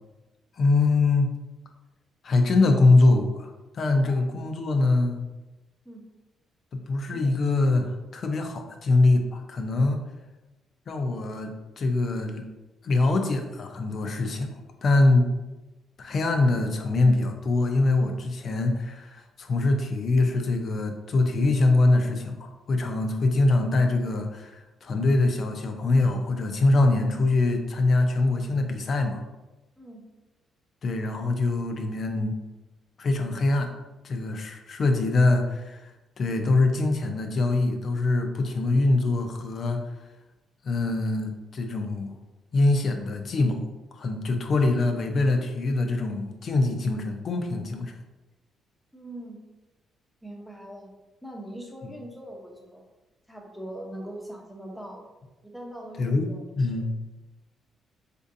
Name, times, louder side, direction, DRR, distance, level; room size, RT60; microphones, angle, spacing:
voice 1, 0.6-1.3 2.2-5.2 6.7-10.0 10.9-12.4 12.8-14.5 14.8-15.3 16.0-29.2 30.8-32.4 33.0-33.7 34.0-35.9 36.2-39.8 40.6-42.2 42.5-43.6 43.9-48.0 56.0-56.3 56.6-56.9, left 2 dB, 50° left, 5 dB, 0.5 m, -23 dB
voice 2, 48.9-49.4 50.2-50.9 51.2-52.8 53.3-55.1 55.4-56.9, right 1 dB, ahead, 0 dB, 0.7 m, -41 dB
4.4 x 2.5 x 2.6 m, 1.1 s
cardioid pair, 90°, 0 cm